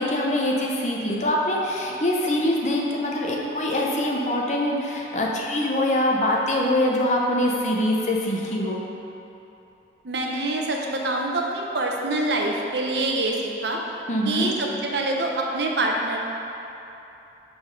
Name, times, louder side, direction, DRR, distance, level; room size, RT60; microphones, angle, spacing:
voice 1, 0.0-8.8 14.1-14.5, left 1 dB, 40° left, -2 dB, 0.8 m, -24 dB
voice 2, 10.0-13.8 14.2-16.2, right 2 dB, 70° right, 0 dB, 0.8 m, -25 dB
6.1 x 5.3 x 5.2 m, 3.0 s
head